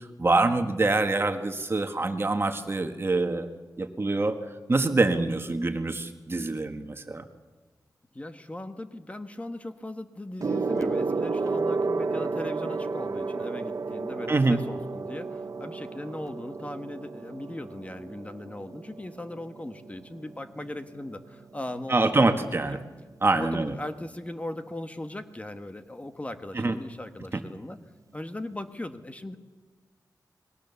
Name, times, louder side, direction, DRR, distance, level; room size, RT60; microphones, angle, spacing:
voice 1, 0.2-3.5 3.8-4.4 4.7-7.2 14.3-14.6 21.9-22.8 23.2-23.7 26.5-26.8 27.3-27.4, right 3 dB, 35° right, 7 dB, 1.6 m, -25 dB
voice 2, 8.1-22.8 23.3-27.8 28.1-29.4, left 1 dB, 20° left, 8 dB, 1.3 m, -38 dB
Gong, 10.4-20.2 21.1-21.4, right 4 dB, 50° right, 1.0 m, -32 dB
28.5 x 21.0 x 7.0 m, 1.3 s
wide cardioid pair, 115°, 7 cm